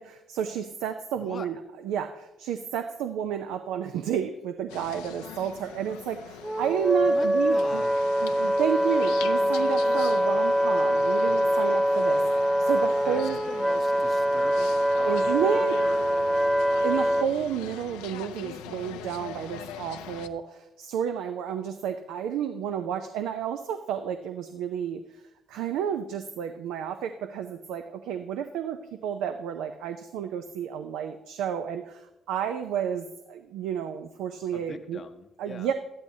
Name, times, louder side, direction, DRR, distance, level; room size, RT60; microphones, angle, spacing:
voice 1, 0.0-1.6 1.8-7.8 8.2-13.4 15.0-15.8 16.8-25.2 25.5-35.0 35.4-35.7, right 9 dB, 75° right, 8 dB, 0.5 m, -31 dB
sound 1, 4.7-20.3, left 9 dB, 85° left, 0.4 m, -42 dB
Wind instrument woodwind instrument, 6.4-17.3, equal, 5° right, 0.4 m, -24 dB
voice 2, 7.1-7.9 13.0-16.3 34.5-35.7, left 5 dB, 50° left, 7 dB, 0.7 m, -43 dB
Wind instrument woodwind instrument 2, 9.0-13.1, right 1 dB, 45° right, 0.8 m, -45 dB
12.5 x 11.5 x 2.7 m, 0.95 s
hypercardioid pair, 50°, 0 cm